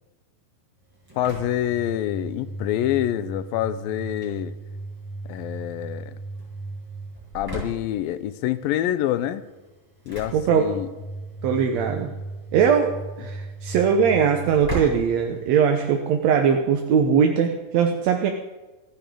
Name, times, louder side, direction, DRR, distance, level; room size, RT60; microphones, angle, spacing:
Engine / Slam, 0.8-16.0, right 2 dB, 5° right, 5.6 m, -37 dB
voice 1, 1.2-4.5 5.3-6.2 7.3-9.4 10.1-10.9, left 12 dB, 90° left, 13 dB, 2.5 m, -26 dB
voice 2, 10.3-10.7 11.4-12.1 12.5-18.3, right 7 dB, 70° right, 4 dB, 1.8 m, -20 dB
26.0 x 10.5 x 3.8 m, 1.2 s
omnidirectional pair, 4.1 m